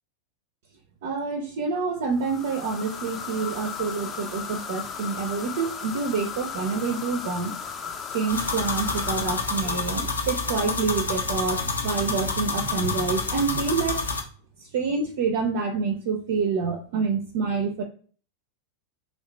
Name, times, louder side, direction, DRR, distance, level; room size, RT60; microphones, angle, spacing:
voice 1, 1.0-7.6 8.1-14.0 14.6-17.8, right 5 dB, 55° right, 6 dB, 0.5 m, -27 dB
sound 1, 2.1-10.7, left 7 dB, 25° left, 0.5 m, -36 dB
sound 2, 8.3-14.2, left 4 dB, 75° left, 0.5 m, -28 dB
2.9 x 2.8 x 3.1 m, 0.42 s
figure-of-eight pair, 90°, 0 cm